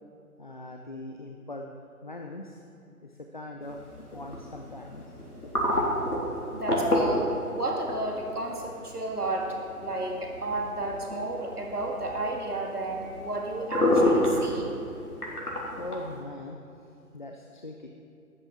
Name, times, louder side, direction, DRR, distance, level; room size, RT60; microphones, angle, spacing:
voice 1, 0.4-1.7 2.0-2.6 3.0-5.0 15.8-16.6 17.1-17.9, left 2 dB, 35° left, 2 dB, 0.6 m, -41 dB
sound 1, 3.6-16.2, left 1 dB, 85° left, 3.8 m, -30 dB
voice 2, 6.5-9.5 9.8-14.7, right 2 dB, 85° right, 0 dB, 2.3 m, -32 dB
13.0 x 9.8 x 6.0 m, 2.7 s
figure-of-eight pair, 150°, 45 cm